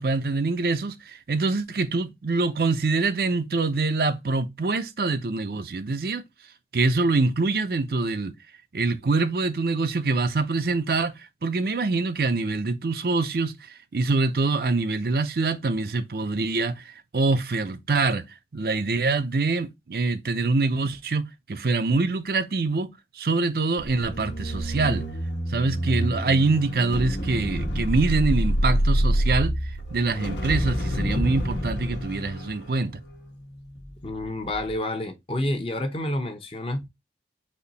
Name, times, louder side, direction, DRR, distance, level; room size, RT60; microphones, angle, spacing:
voice 1, 0.0-6.2 6.7-8.3 8.7-11.1 11.4-13.5 13.9-18.2 18.5-22.9 23.2-25.0 25.5-29.5 29.9-33.0, right 3 dB, 55° right, 0.5 m, -25 dB
sound 1, 23.8-34.1 34.4-34.7, equal, 85° left, 1.2 m, -27 dB
voice 2, 34.0-36.9, left 1 dB, 30° left, 0.7 m, -29 dB
4.3 x 3.1 x 4.0 m
head